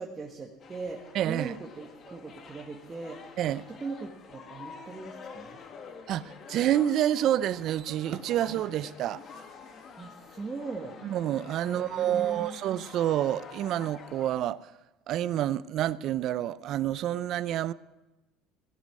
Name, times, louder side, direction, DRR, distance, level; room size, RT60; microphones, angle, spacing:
voice 1, 0.0-3.3 3.8-5.6 10.0-11.0 11.6-12.6, right 3 dB, 20° right, 1.6 m, -40 dB
sound 1, 0.6-14.4, left 5 dB, 40° left, 1.8 m, -48 dB
voice 2, 1.1-1.5 3.4-3.7 6.1-9.2 11.0-14.6 15.1-17.7, right 11 dB, 50° right, 0.5 m, -28 dB
16.5 x 8.2 x 9.6 m
cardioid pair, 130°, 0 cm